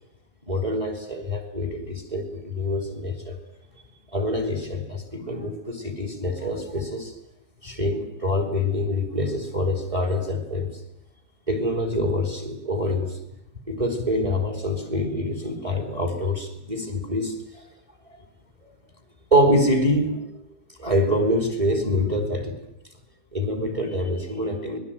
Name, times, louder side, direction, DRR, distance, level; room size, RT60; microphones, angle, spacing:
voice 1, 0.4-3.4 4.1-7.1 7.6-10.7 11.5-13.2 13.7-17.6 18.1-18.2 19.3-20.4 20.8-22.5 23.3-24.8, left 1 dB, 5° right, 7 dB, 4.4 m, -25 dB
26.0 x 21.5 x 9.4 m, 0.77 s
omnidirectional pair, 5.0 m